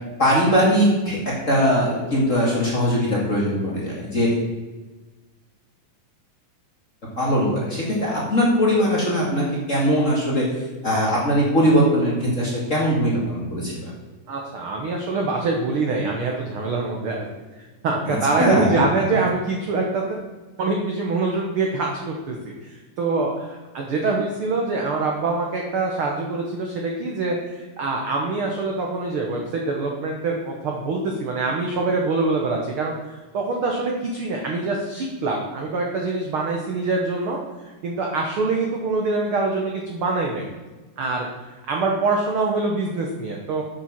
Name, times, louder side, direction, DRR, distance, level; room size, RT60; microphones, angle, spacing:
voice 1, 0.2-1.2 1.5-4.3 7.2-10.4 10.8-13.9 18.1-18.8, equal, 30° left, -5 dB, 1.7 m, -20 dB
voice 2, 14.3-17.2 17.6-20.0 20.6-40.5 41.0-43.6, right 3 dB, 80° right, 0 dB, 1.2 m, -25 dB
7.5 x 7.2 x 5.9 m, 1.2 s
omnidirectional pair, 3.9 m